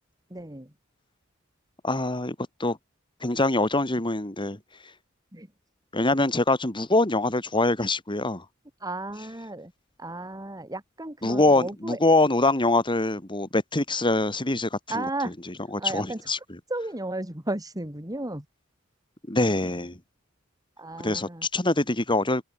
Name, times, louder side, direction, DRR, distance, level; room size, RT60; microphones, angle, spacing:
voice 1, 0.3-0.7 5.3-5.5 8.8-9.7 10.0-12.0 14.9-16.4 16.7-18.5 20.8-21.5, right 2 dB, 15° right, 4.5 m, -34 dB
voice 2, 1.8-2.3 2.6-2.8 3.2-4.6 5.9-8.4 11.2-14.8 15.9-16.4 19.3-19.9 21.0-22.4, left 2 dB, 25° left, 2.9 m, -24 dB
head